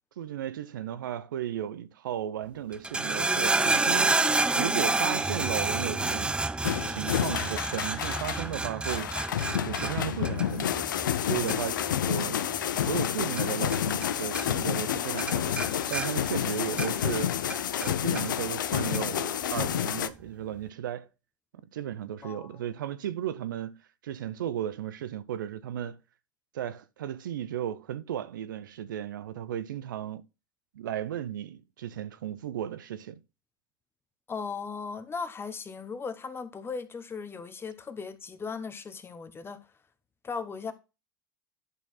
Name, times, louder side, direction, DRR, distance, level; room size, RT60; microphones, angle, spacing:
voice 1, 0.2-6.4 6.8-9.2 9.7-10.9 11.2-12.5 12.8-15.6 15.9-17.4 17.8-21.1 21.5-26.0 26.5-30.2 30.7-33.2, right 10 dB, 85° right, 0.6 m, -35 dB
sound 1, 2.7-14.1 14.3-14.9 15.2-17.1 17.5-18.2 18.9-19.0, right 3 dB, 10° right, 0.4 m, -29 dB
sound 2, 6.6-8.5 8.8-20.1, left 10 dB, 90° left, 0.5 m, -29 dB
voice 2, 22.2-22.7 34.3-39.6 40.2-40.7, left 5 dB, 20° left, 1.1 m, -37 dB
11.0 x 4.4 x 4.1 m
hypercardioid pair, 95°, 10 cm